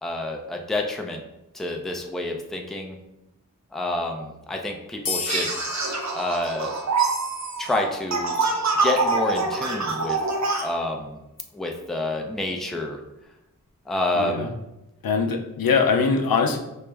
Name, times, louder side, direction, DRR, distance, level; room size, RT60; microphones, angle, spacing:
voice 1, 0.0-1.2 1.5-3.0 3.7-5.5 6.1-6.7 7.6-8.4 8.8-10.2 10.6-11.2 11.5-13.0 13.9-14.5, left 1 dB, ahead, 2 dB, 0.4 m, -28 dB
sound 1, 5.0-8.1, left 4 dB, 65° left, 0.9 m, -35 dB
sound 2, 5.3-10.6, right 4 dB, 55° right, 0.6 m, -25 dB
voice 2, 14.1-14.5 15.0-16.6, left 5 dB, 85° left, 4 dB, 0.5 m, -22 dB
4.5 x 2.0 x 3.3 m, 0.92 s
wide cardioid pair, 75°, 34 cm